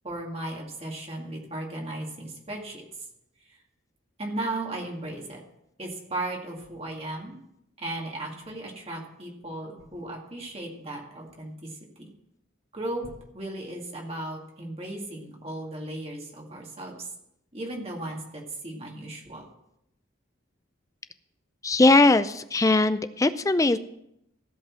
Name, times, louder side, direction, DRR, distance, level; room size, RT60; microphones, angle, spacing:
voice 1, 0.0-2.8 3.5-3.6 4.2-5.4 5.8-7.4 7.8-12.1 12.7-17.1 17.5-19.4, right 1 dB, 30° right, -1 dB, 2.1 m, -36 dB
voice 2, 21.6-23.8, left 2 dB, 15° left, 13 dB, 0.4 m, -20 dB
15.5 x 5.4 x 6.2 m, 0.80 s
head